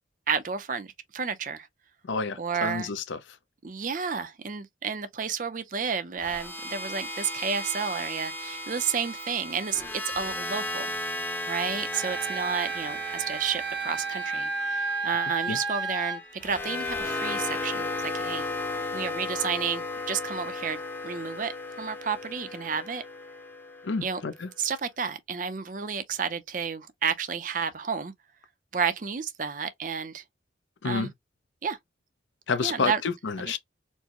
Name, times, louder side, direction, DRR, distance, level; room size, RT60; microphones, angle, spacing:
voice 1, 0.3-1.7 2.4-2.9 3.6-11.0 11.5-18.5 18.9-20.8 21.0-21.5 21.8-23.0 24.0-24.2 24.6-28.1 28.7-30.2 30.8-31.1 31.6-31.8 32.6-33.0 33.4-33.6, right 6 dB, 45° right, 0.5 m, -31 dB
voice 2, 2.0-3.2 15.5-15.6 23.8-24.5 30.8-31.1 32.5-33.6, left 4 dB, 85° left, 0.5 m, -29 dB
sound 1, 6.2-24.3, left 2 dB, 10° left, 0.6 m, -35 dB
Wind instrument woodwind instrument, 11.9-16.2, right 4 dB, 85° right, 1.9 m, -32 dB
4.4 x 2.0 x 2.9 m
head